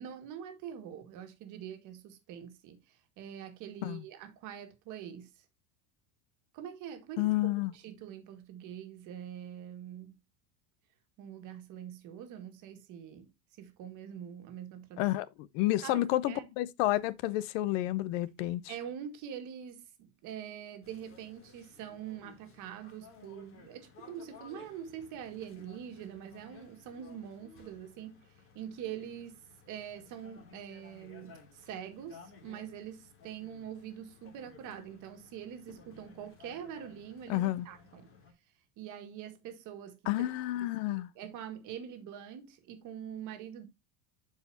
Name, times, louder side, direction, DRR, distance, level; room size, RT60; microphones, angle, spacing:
voice 1, 0.0-5.3 6.5-10.2 11.2-13.3 13.6-15.1 15.8-16.5 18.7-28.3 28.5-38.1 38.8-40.3 40.9-43.7, right 9 dB, 45° right, 1.7 m, -44 dB
voice 2, 7.2-7.7 15.0-15.3 15.5-18.7 37.3-37.7 40.1-41.1, left 16 dB, 60° left, 0.6 m, -30 dB
sound 1, 20.8-38.3, left 5 dB, 30° left, 2.6 m, -57 dB
12.0 x 4.9 x 2.6 m
cardioid pair, 160°, 43 cm